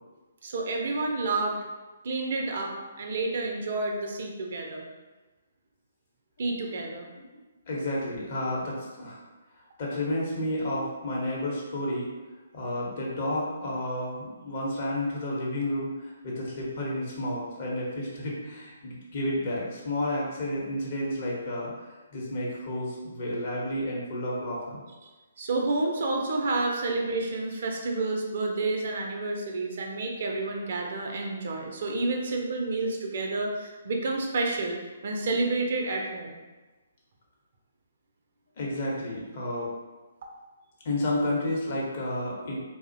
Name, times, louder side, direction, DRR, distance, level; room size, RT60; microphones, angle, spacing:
voice 1, 0.4-1.6 2.0-4.9 6.4-7.1 25.0-25.1 25.4-34.8 35.0-36.4, right 3 dB, 55° right, 1 dB, 0.4 m, -29 dB
voice 2, 7.7-9.2 9.8-12.1 12.5-21.7 22.1-24.8 38.6-39.7 40.8-42.6, left 1 dB, 50° left, -4 dB, 0.7 m, -31 dB
2.4 x 2.0 x 2.6 m, 1.2 s
figure-of-eight pair, 135°, 0 cm